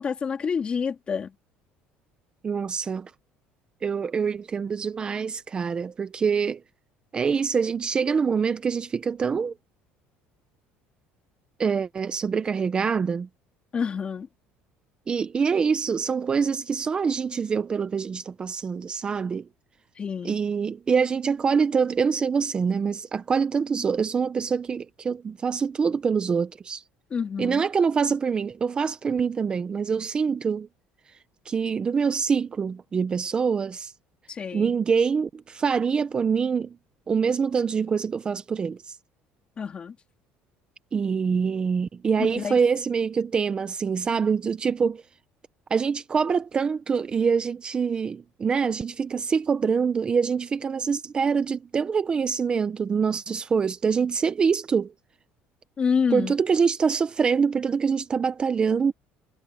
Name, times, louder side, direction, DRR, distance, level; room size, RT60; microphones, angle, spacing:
voice 1, 0.0-1.3 13.7-14.3 20.0-20.4 27.1-27.6 34.3-34.7 39.6-39.9 42.2-42.5 55.8-56.3, left 6 dB, 30° left, 3.3 m, -28 dB
voice 2, 2.4-3.1 3.8-6.6 7.1-9.5 11.6-13.3 15.1-19.5 20.2-26.8 27.4-30.7 31.4-33.9 34.5-36.8 37.1-39.0 40.9-45.0 45.7-54.9 56.1-58.9, right 6 dB, 25° right, 0.8 m, -25 dB
cardioid pair, 145°, 4 cm